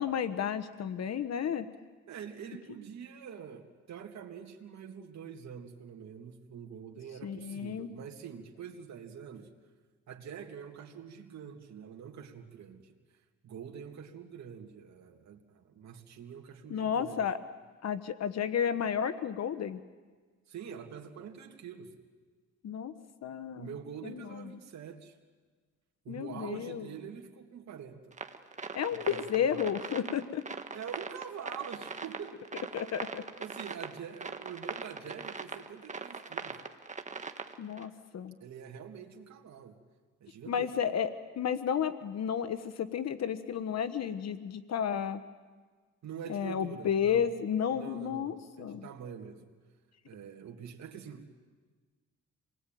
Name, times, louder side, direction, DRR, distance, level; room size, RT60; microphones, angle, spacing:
voice 1, 0.0-1.6 7.2-7.9 16.7-17.4 17.8-19.8 22.6-22.9 23.2-23.7 24.0-24.5 26.1-26.8 28.7-30.4 32.7-33.2 37.6-38.3 40.5-41.1 41.4-45.2 46.3-48.9, left 8 dB, 60° left, 12 dB, 1.3 m, -32 dB
voice 2, 2.1-9.5 10.1-12.9 13.4-17.2 20.5-22.0 23.6-25.2 26.0-28.2 28.9-29.6 30.7-32.4 33.3-36.6 38.4-39.8 40.2-40.7 46.0-47.2 47.7-49.5 50.0-51.3, right 7 dB, 65° right, 2 dB, 2.7 m, -45 dB
sound 1, 28.1-37.9, right 4 dB, 25° right, 1.7 m, -41 dB
27.5 x 20.5 x 9.2 m, 1.4 s
cardioid pair, 90°, 30 cm